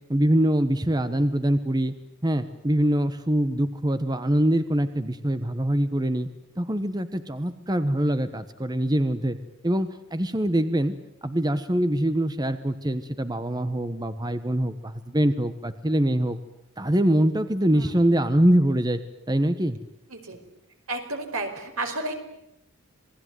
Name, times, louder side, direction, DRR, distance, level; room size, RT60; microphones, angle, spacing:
voice 1, 0.1-1.9 2.2-6.3 6.6-9.4 9.6-10.9 11.2-16.4 16.8-19.0 19.3-19.8, right 1 dB, 20° right, 11 dB, 1.1 m, -24 dB
voice 2, 20.9-22.1, right 2 dB, 90° right, 4 dB, 4.9 m, -32 dB
27.5 x 20.0 x 9.4 m, 0.83 s
head